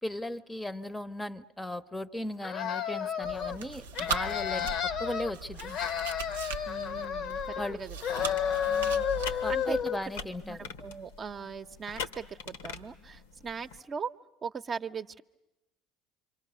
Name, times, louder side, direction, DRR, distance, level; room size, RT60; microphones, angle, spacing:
voice 1, 0.0-5.8 7.6-7.8 9.4-10.7, left 1 dB, 10° left, 13 dB, 0.8 m, -37 dB
sound 1, 2.4-3.6 3.9-5.3 5.6-7.7 8.0-10.0, left 8 dB, 55° left, 0.9 m, -31 dB
Chewing mastication, 3.2-9.8, right 5 dB, 85° right, 0.8 m, -39 dB
voice 2, 6.7-8.0 8.7-9.8 10.4-14.1 14.4-15.2, right 6 dB, 35° right, 7 dB, 0.8 m, -40 dB
sound 2, 8.2-13.8, left 6 dB, 80° left, 1.3 m, -44 dB
27.5 x 24.5 x 6.8 m, 0.97 s
hypercardioid pair, 70°, 0 cm